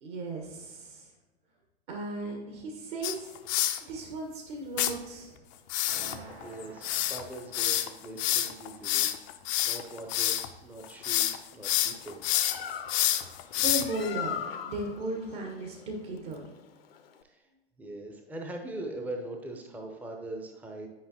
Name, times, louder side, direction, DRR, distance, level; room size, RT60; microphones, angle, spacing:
voice 1, 0.0-1.1 1.9-3.3 3.9-5.4 13.5-14.4 14.6-16.7, right 2 dB, 50° right, 1 dB, 1.5 m, -36 dB
sound 1, 3.0-3.8 4.8-4.9 5.7-10.5 10.8-11.4 11.6-14.0, left 13 dB, 30° left, 0.5 m, -28 dB
sound 2, 5.9-8.6, right 2 dB, 80° right, 2.3 m, -50 dB
voice 2, 6.1-9.1 9.6-12.2 17.2-17.5 17.8-20.9, right 2 dB, 5° right, 2 dB, 0.7 m, -41 dB
Bird, 12.0-17.2, left 8 dB, 65° left, 0.8 m, -40 dB
10.0 x 5.2 x 2.9 m, 1.2 s
figure-of-eight pair, 100°, 32 cm